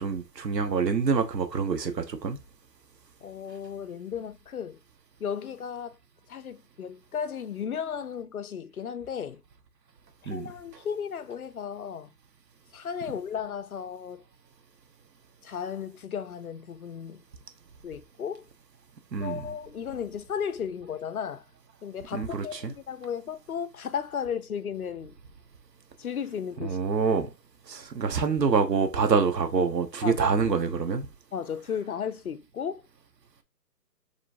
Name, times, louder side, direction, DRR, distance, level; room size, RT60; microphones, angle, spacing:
voice 1, 0.0-2.4 10.3-10.5 19.1-19.4 22.1-22.7 26.6-27.3 27.7-31.1, right 5 dB, 80° right, 1.2 m, -26 dB
voice 2, 3.2-4.8 5.2-6.0 6.3-9.4 10.2-12.1 12.7-14.2 15.4-17.2 17.8-18.4 19.2-21.4 21.8-25.1 26.0-26.8 30.0-30.3 31.3-32.8, left 7 dB, 60° left, 0.6 m, -34 dB
5.1 x 3.1 x 2.6 m
hypercardioid pair, 170°, 50 cm